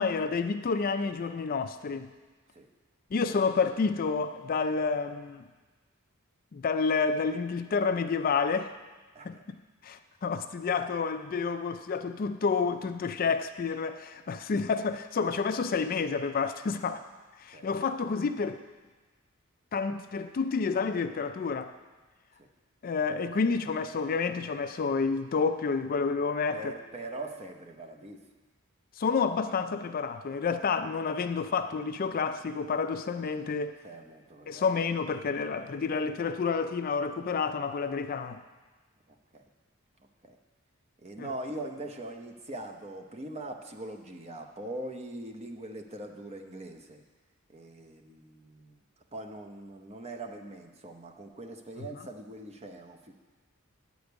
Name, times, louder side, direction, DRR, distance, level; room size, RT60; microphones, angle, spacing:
voice 1, 0.0-2.1 3.1-5.4 6.5-8.7 9.2-9.4 9.8-17.0 17.4-18.6 19.7-21.7 22.8-26.7 29.0-33.8 34.5-38.4 41.2-41.3, left 5 dB, 45° left, 9 dB, 0.4 m, -29 dB
voice 2, 26.5-28.2 33.8-34.8 39.3-39.5 40.2-40.4 41.0-47.0 47.5-48.8 49.1-53.1, right 1 dB, 30° right, 3 dB, 0.8 m, -42 dB
9.3 x 5.1 x 8.0 m, 1.3 s
head